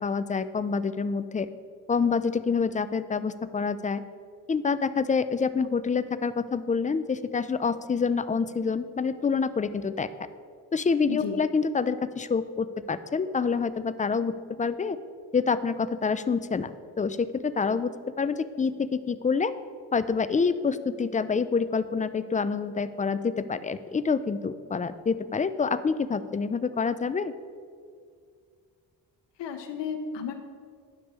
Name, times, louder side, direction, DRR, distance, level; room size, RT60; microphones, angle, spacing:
voice 1, 0.0-1.5 1.9-4.0 4.5-10.1 10.7-15.0 15.3-17.9 18.2-19.5 19.9-27.3, left 5 dB, 20° left, 13 dB, 0.3 m, -27 dB
voice 2, 11.1-11.4 29.4-30.3, left 6 dB, 75° left, 5 dB, 0.8 m, -33 dB
9.9 x 6.0 x 4.7 m, 2.1 s
cardioid pair, 70°, 43 cm